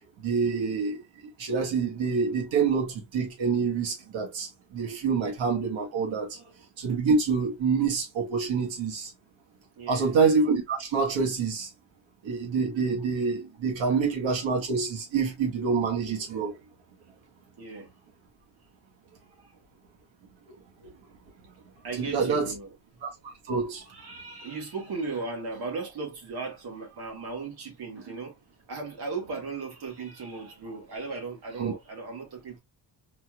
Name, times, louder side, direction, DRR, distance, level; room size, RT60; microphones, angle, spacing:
voice 1, 0.2-1.0 1.4-6.4 6.8-9.1 9.9-11.7 12.2-16.6 22.0-22.5 23.0-23.1 23.5-23.8 31.6-31.7, right 5 dB, 80° right, 1.8 m, -26 dB
voice 2, 9.8-10.2 12.8-12.9 13.9-14.0 17.6-17.9 19.4-19.5 21.8-23.0 23.9-28.4 28.7-32.6, right 4 dB, 55° right, 1.7 m, -37 dB
4.1 x 3.3 x 2.3 m
cardioid pair, 150°, 45 cm